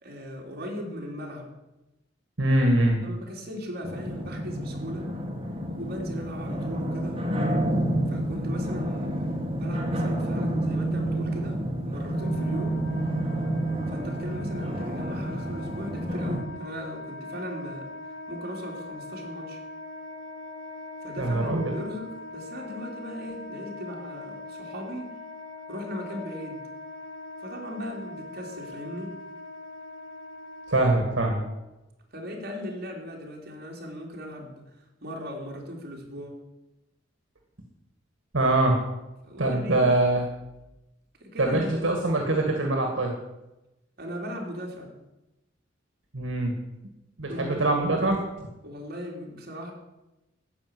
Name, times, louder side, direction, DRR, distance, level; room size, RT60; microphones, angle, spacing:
voice 1, 0.0-1.5 3.0-5.1 5.8-7.2 8.1-9.2 9.5-12.9 13.9-17.9 18.3-19.6 21.0-25.1 25.7-26.6 27.4-29.1 32.1-34.6 35.0-36.4 39.2-39.9 41.2-41.8 44.0-44.9 47.3-47.6 48.6-49.7, equal, 50° right, -1 dB, 3.1 m, -38 dB
voice 2, 2.4-3.0 21.2-21.7 30.7-31.4 38.3-38.8 39.4-40.2 41.4-43.1 46.1-46.5 47.2-48.5, right 2 dB, 75° right, 2 dB, 1.8 m, -23 dB
sound 1, 3.8-16.4, right 1 dB, 30° right, 2.0 m, -29 dB
Wind instrument woodwind instrument, 12.1-31.6, left 2 dB, 70° left, 1.5 m, -42 dB
14.0 x 5.2 x 9.4 m, 0.99 s
head